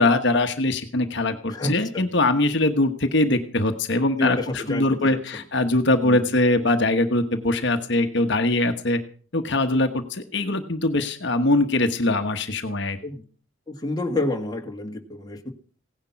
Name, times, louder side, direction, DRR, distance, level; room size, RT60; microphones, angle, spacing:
voice 1, 0.0-9.0 9.3-13.0, left 2 dB, 55° left, 7 dB, 1.2 m, -22 dB
voice 2, 1.5-2.1 4.2-5.2 6.0-6.2 13.0-13.2 13.7-15.5, left 2 dB, 20° left, 2 dB, 1.7 m, -29 dB
17.0 x 10.5 x 5.8 m, 0.43 s
head